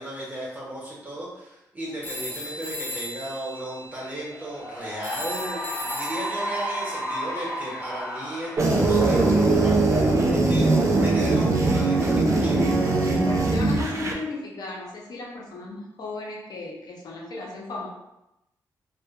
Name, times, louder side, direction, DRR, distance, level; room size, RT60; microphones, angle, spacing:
voice 1, 0.0-12.6, right 1 dB, 20° right, -6 dB, 1.2 m, -36 dB
sound 1, 2.0-8.1, equal, 20° left, 0.6 m, -38 dB
Cheering / Applause, 4.2-10.9, equal, 5° left, 1.1 m, -34 dB
sound 2, 8.6-14.1, right 2 dB, 45° right, 0.4 m, -21 dB
voice 2, 13.2-17.9, left 3 dB, 65° left, -2 dB, 0.6 m, -35 dB
2.7 x 2.1 x 2.2 m, 0.90 s
cardioid pair, 80°, 7 cm